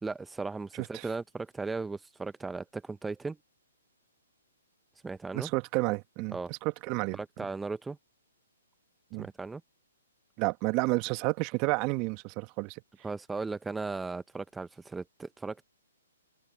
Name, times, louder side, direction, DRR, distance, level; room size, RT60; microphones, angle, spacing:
voice 1, 0.0-3.4 5.0-5.5 6.3-6.5 7.1-8.0 9.2-9.6 13.0-15.6, right 3 dB, 5° right, 0.6 m, -37 dB
voice 2, 5.3-7.2 9.1-9.3 10.4-12.8, right 27 dB, 35° right, 1.6 m, -30 dB
figure-of-eight pair, 125°, 0 cm